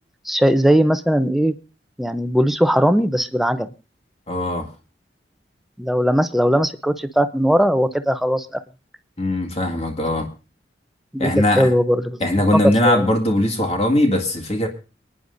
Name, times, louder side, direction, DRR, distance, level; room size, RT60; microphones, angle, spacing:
voice 1, 0.3-1.5 2.0-3.7 5.8-8.5 11.1-11.3 11.6-12.2 12.6-13.1, equal, ahead, 9 dB, 0.6 m, -18 dB
voice 2, 4.3-4.7 9.2-10.3 11.2-11.7 12.2-14.7, left 1 dB, 35° left, 3 dB, 1.9 m, -20 dB
29.0 x 9.8 x 2.6 m, 0.34 s
head